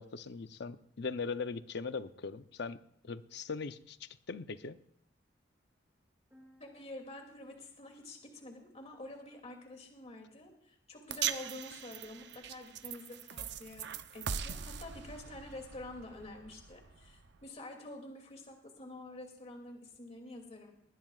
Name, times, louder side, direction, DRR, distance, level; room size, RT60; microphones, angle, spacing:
voice 1, 0.0-2.8 3.0-4.8, left 4 dB, 65° left, 12 dB, 0.7 m, -40 dB
sound 1, 6.3-10.0, equal, 10° right, 6.6 m, -68 dB
voice 2, 6.6-13.9 14.1-20.7, left 2 dB, 35° left, 2 dB, 2.7 m, -48 dB
sound 2, 11.1-17.5, right 8 dB, 65° right, 0.7 m, -41 dB
20.0 x 20.0 x 2.4 m, 0.70 s
head